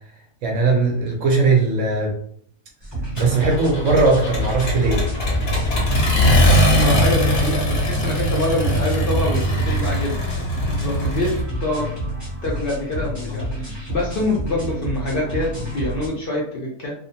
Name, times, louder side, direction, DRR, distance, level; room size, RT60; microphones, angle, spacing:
voice 1, 0.4-2.1 3.2-5.0, right 3 dB, 65° right, 1 dB, 0.8 m, -19 dB
sound 1, 2.8-16.1, right 1 dB, 20° right, 0.5 m, -29 dB
Accelerating revving vroom, 3.2-11.4, equal, 50° left, 0.8 m, -20 dB
voice 2, 6.7-10.2 10.8-11.3 11.6-11.9 12.4-16.9, left 2 dB, 75° left, -3 dB, 0.5 m, -25 dB
2.6 x 2.1 x 2.7 m, 0.64 s
omnidirectional pair, 1.6 m